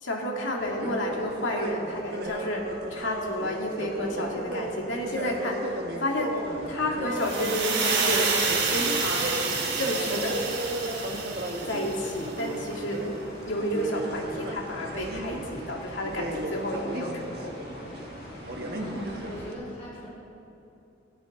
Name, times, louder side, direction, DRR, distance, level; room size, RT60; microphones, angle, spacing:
voice 1, 0.0-6.3 6.7-8.4 8.7-9.3 9.8-10.4 11.6-13.1 13.5-17.6, left 1 dB, 90° left, -1 dB, 2.3 m, -30 dB
sound 1, 0.6-19.5, right 1 dB, 55° right, 1.4 m, -36 dB
sound 2, 6.3-19.5, left 1 dB, 60° left, 2.4 m, -44 dB
sound 3, 7.2-12.2, right 4 dB, 75° right, 3.0 m, -28 dB
voice 2, 18.7-20.1, equal, 30° left, -5 dB, 2.8 m, -39 dB
17.5 x 16.0 x 3.6 m, 2.9 s
head